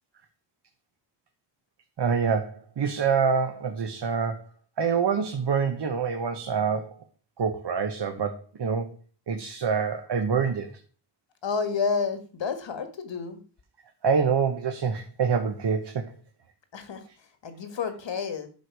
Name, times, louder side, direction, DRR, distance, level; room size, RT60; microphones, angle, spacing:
voice 1, 2.0-4.4 4.8-6.9 7.4-8.9 9.3-10.7 14.0-16.0, right 6 dB, 65° right, 5 dB, 1.1 m, -26 dB
voice 2, 11.4-13.4 16.7-17.0 17.4-18.5, left 5 dB, 80° left, 8 dB, 1.8 m, -30 dB
11.0 x 6.3 x 4.8 m, 0.40 s
wide cardioid pair, 140°, 44 cm